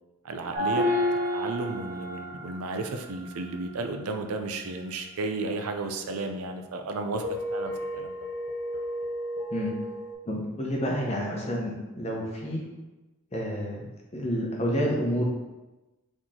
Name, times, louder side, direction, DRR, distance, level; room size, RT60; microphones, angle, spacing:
voice 1, 0.2-8.2, right 3 dB, 80° right, 5 dB, 0.5 m, -33 dB
sound 1, 0.5-2.7 7.1-10.1, left 1 dB, 35° right, 0.6 m, -30 dB
voice 2, 10.3-12.7 13.3-13.9 14.1-15.3, equal, 30° left, -2 dB, 0.8 m, -29 dB
4.2 x 3.0 x 3.7 m, 1.1 s
head